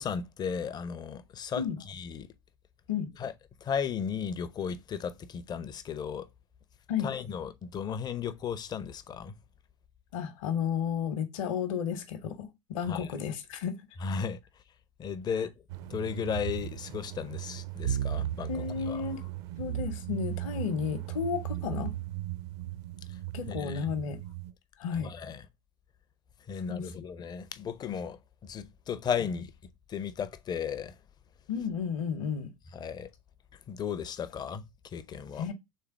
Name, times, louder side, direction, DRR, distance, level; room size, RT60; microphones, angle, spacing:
voice 1, 0.0-1.6 1.9-2.3 3.2-3.3 3.6-6.3 7.0-9.3 12.9-13.1 14.0-14.4 15.0-15.5 15.9-18.5 18.9-19.0 23.5-23.9 25.0-25.4 26.5-29.5 29.9-30.9 32.7-33.1 33.7-34.6 34.9-35.4, left 7 dB, 20° left, 0.4 m, -35 dB
voice 2, 10.1-13.8 18.5-19.2 19.6-21.9 23.3-24.2 24.8-25.1 26.7-26.9 31.5-32.5 35.3-35.5, left 7 dB, 60° left, 0.8 m, -32 dB
sound 1, 15.7-24.5, right 13 dB, 50° right, 0.5 m, -36 dB
3.4 x 3.3 x 4.5 m
figure-of-eight pair, 80°, 19 cm